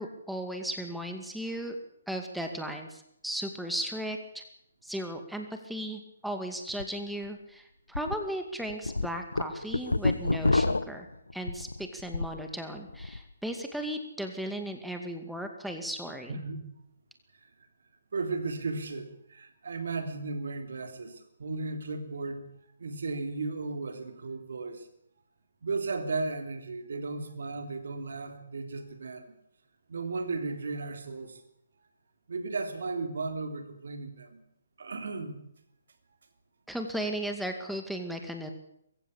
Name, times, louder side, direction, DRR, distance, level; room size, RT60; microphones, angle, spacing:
voice 1, 0.0-1.8 2.1-4.4 4.8-11.1 11.3-16.4 36.7-38.5, right 1 dB, ahead, 4 dB, 2.3 m, -36 dB
sound 1, 6.7-6.8 7.3-7.4 7.9-8.2 8.6-12.4 12.8-13.2, left 2 dB, 90° left, 1.0 m, -28 dB
voice 2, 16.3-16.6 17.4-17.5 18.1-22.5 22.8-24.9 25.6-29.3 29.9-31.4 32.3-34.4 34.8-35.5, right 3 dB, 65° right, 7 dB, 3.5 m, -35 dB
22.0 x 15.5 x 8.6 m, 0.75 s
figure-of-eight pair, 140°, 0 cm